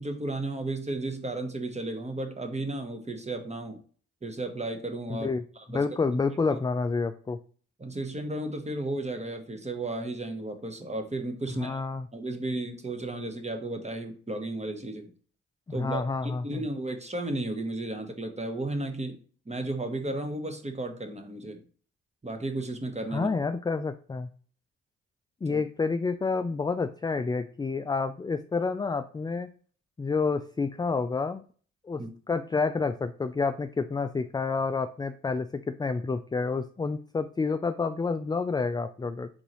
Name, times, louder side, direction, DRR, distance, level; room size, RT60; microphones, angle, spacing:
voice 1, 0.0-3.8 4.2-5.3 5.6-5.8 6.5-6.6 7.8-11.8 12.1-15.1 15.7-19.2 19.5-21.6 22.2-23.3 25.5-25.6 32.0-32.1, right 2 dB, 20° right, 5 dB, 1.1 m, -34 dB
voice 2, 5.1-5.4 5.7-7.4 11.6-12.1 15.8-16.6 23.1-24.3 25.4-29.5 30.0-31.4 31.9-39.3, left 4 dB, 15° left, 9 dB, 0.3 m, -29 dB
4.0 x 3.7 x 3.0 m, 0.42 s
hypercardioid pair, 40°, 33 cm